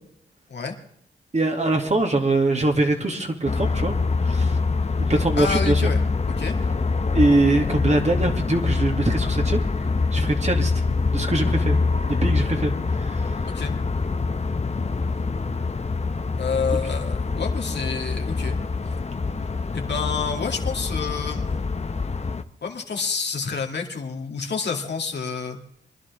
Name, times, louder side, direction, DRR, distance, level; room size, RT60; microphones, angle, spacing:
voice 1, 1.3-4.6 5.0-5.8 7.1-9.6 10.1-10.7 11.1-11.8 12.2-13.3, right 2 dB, 35° right, 3 dB, 2.5 m, -23 dB
sound 1, 3.5-22.4, left 4 dB, 35° left, 1.0 m, -25 dB
voice 2, 5.4-6.0 6.3-6.5 13.5-13.7 16.4-18.6 19.7-21.5 22.6-25.6, left 5 dB, 60° left, 2 dB, 2.4 m, -28 dB
24.5 x 11.0 x 3.6 m, 0.68 s
supercardioid pair, 45°, 20 cm